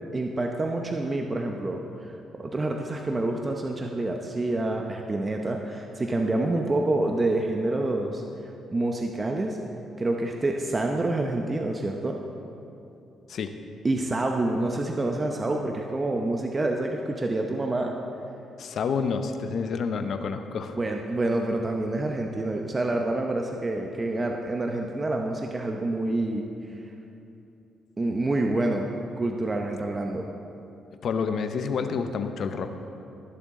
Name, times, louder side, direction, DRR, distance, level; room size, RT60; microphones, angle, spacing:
voice 1, 0.1-1.8 2.4-8.2 8.7-9.6 10.0-12.2 13.8-17.9 20.7-26.4 28.0-28.9 29.2-30.3, right 2 dB, 25° right, 2 dB, 0.7 m, -27 dB
voice 2, 18.6-20.8 31.0-32.7, left 5 dB, 60° left, 8 dB, 0.7 m, -29 dB
20.0 x 7.1 x 3.7 m, 2.7 s
cardioid pair, 90°, 0 cm